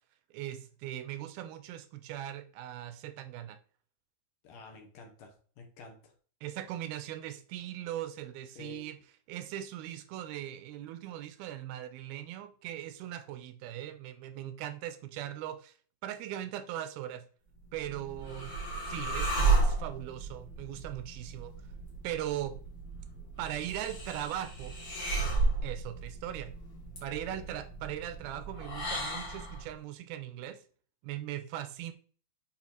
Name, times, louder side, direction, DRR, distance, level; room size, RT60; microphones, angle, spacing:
voice 1, 0.3-3.6 6.4-9.0 9.3-15.7 16.0-17.3 17.7-18.6 18.9-21.5 22.0-22.6 23.4-24.8 25.6-26.5 27.0-30.6 31.0-31.9, right 12 dB, 80° right, 11 dB, 2.3 m, -39 dB
voice 2, 4.4-6.1 8.6-8.9 27.2-27.5, left 4 dB, 65° left, 3 dB, 2.6 m, -50 dB
sound 1, 17.6-29.7, right 3 dB, 35° left, 1.5 m, -33 dB
7.1 x 4.7 x 4.1 m, 0.43 s
omnidirectional pair, 4.5 m